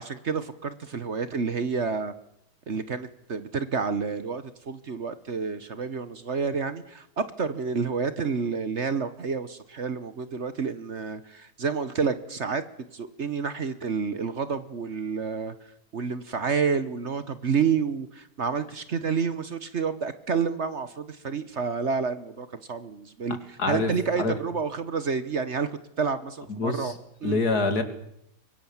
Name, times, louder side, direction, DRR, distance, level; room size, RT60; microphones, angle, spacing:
voice 1, 0.0-2.1 2.7-12.6 12.9-15.5 15.9-23.4 23.7-25.7 26.0-26.9 27.2-27.4, right 5 dB, 45° right, 13 dB, 1.3 m, -29 dB
voice 2, 23.6-23.9 24.2-24.3 26.5-27.0 27.2-27.8, left 3 dB, 70° left, 8 dB, 3.1 m, -25 dB
25.0 x 23.0 x 7.3 m, 0.77 s
omnidirectional pair, 1.7 m